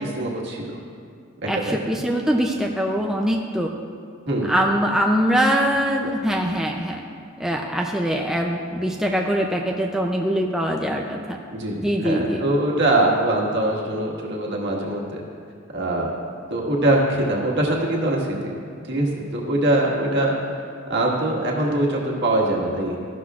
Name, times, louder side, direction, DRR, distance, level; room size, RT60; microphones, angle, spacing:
voice 1, 0.2-0.8 1.4-2.0 4.3-4.5 11.5-15.2 15.7-16.1 16.5-18.5 18.9-20.3 20.9-23.0, right 1 dB, 60° right, -2 dB, 1.7 m, -23 dB
voice 2, 1.5-3.7 4.5-7.0 7.4-11.4 11.8-12.4, equal, ahead, 0 dB, 0.5 m, -23 dB
14.0 x 12.0 x 2.4 m, 2.3 s
head